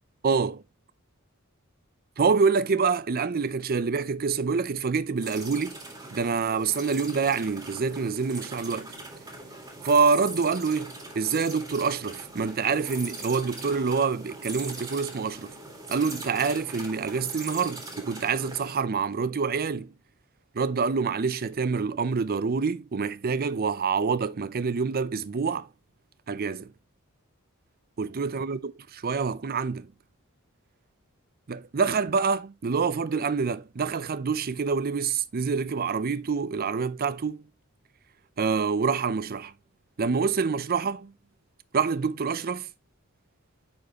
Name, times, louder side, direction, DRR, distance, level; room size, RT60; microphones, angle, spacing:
voice 1, 0.2-0.6 2.2-5.8 6.1-8.9 9.8-15.5 15.9-19.9 20.5-25.7 26.3-26.7 28.0-29.9 31.5-37.4 38.4-39.5 40.0-41.1 41.7-42.7, right 5 dB, 45° right, 0.5 m, -26 dB
sound 1, 5.2-18.8, right 2 dB, 15° right, 2.0 m, -41 dB
9.4 x 4.5 x 2.9 m
head